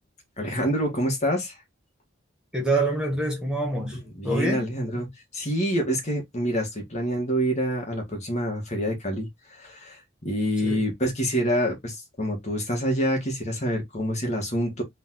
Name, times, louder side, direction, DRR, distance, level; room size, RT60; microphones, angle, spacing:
voice 1, 0.4-1.6 4.2-5.1 5.3-10.0 10.2-14.8, equal, 35° left, 1.8 m, -27 dB
voice 2, 2.5-5.0 10.6-10.9, right 2 dB, 5° right, 1.1 m, -27 dB
3.8 x 3.1 x 3.8 m
head